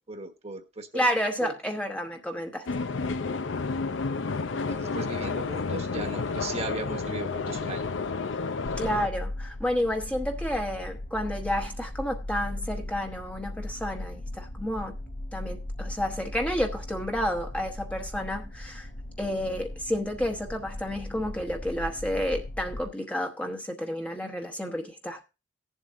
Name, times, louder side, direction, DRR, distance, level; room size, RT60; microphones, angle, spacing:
voice 1, 0.0-1.0 1.4-1.5 4.5-7.8, right 2 dB, 35° right, 1.2 m, -37 dB
voice 2, 0.9-2.7 8.8-15.0 15.3-18.9 19.2-25.2, equal, 5° left, 0.9 m, -30 dB
sound 1, 2.7-9.1, left 4 dB, 85° left, 0.6 m, -31 dB
sound 2, 8.6-22.8, left 1 dB, 50° left, 2.6 m, -38 dB
18.0 x 7.4 x 2.6 m
head